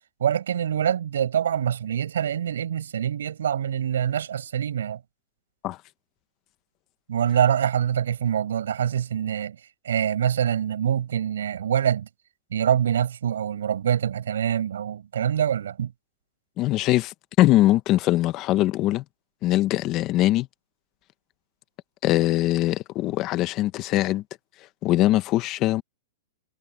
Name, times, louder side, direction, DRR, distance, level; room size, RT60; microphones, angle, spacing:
voice 1, 0.2-5.0 7.1-9.6 9.8-12.1 12.5-15.9, right 9 dB, 85° right, 6.5 m, -25 dB
voice 2, 16.6-19.0 19.4-20.5 22.0-24.2 24.8-25.8, left 15 dB, 30° left, 1.0 m, -22 dB
hypercardioid pair, 160°, 0 cm